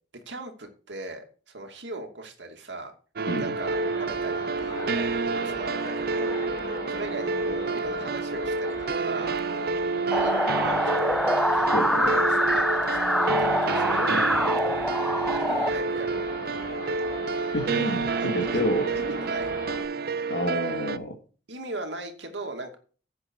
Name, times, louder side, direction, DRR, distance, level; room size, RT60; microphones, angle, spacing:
voice 1, 0.3-2.9 3.4-5.1 5.3-9.4 10.1-11.0 11.5-14.3 15.3-16.8 18.2-18.7 18.9-19.5 21.5-22.8, right 2 dB, 80° right, 4 dB, 2.5 m, -38 dB
sound 1, 3.2-21.0, right 4 dB, 55° right, 0.6 m, -29 dB
sound 2, 3.6-19.8, left 1 dB, 20° left, 3.2 m, -40 dB
sound 3, 10.1-15.7, equal, ahead, 0.4 m, -25 dB
voice 2, 11.7-12.2 14.1-14.2 16.8-17.0 17.5-18.9 20.3-21.2, equal, 90° left, 3 dB, 2.1 m, -29 dB
11.0 x 8.4 x 4.7 m, 0.38 s
head